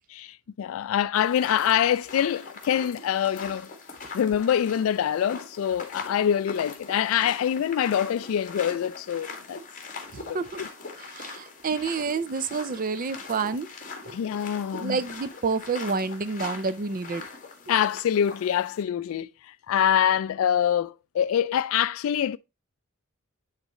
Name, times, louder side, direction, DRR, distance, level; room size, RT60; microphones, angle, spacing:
voice 1, 0.1-3.7 4.1-9.6 10.3-10.7 14.1-15.0 17.7-22.4, left 9 dB, 70° left, 0.3 m, -25 dB
sound 1, 1.1-18.8, left 4 dB, 40° left, 2.0 m, -42 dB
voice 2, 10.1-10.6 11.0-13.7 14.0-14.2 14.7-17.2, right 4 dB, 40° right, 0.5 m, -29 dB
9.9 x 4.1 x 3.0 m
head